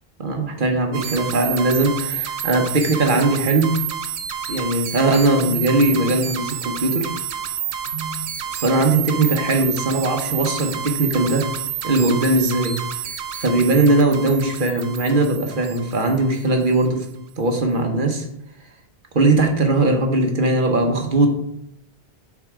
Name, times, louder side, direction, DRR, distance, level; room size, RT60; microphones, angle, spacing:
voice 1, 0.2-3.8 4.5-7.1 7.9-8.2 8.5-11.4 11.8-12.8 13.0-17.1 17.4-18.3 19.1-21.3, right 2 dB, 55° right, 4 dB, 1.2 m, -19 dB
sound 1, 0.9-16.8, right 9 dB, 90° right, 0.9 m, -29 dB
7.2 x 4.1 x 4.8 m, 0.77 s
omnidirectional pair, 1.1 m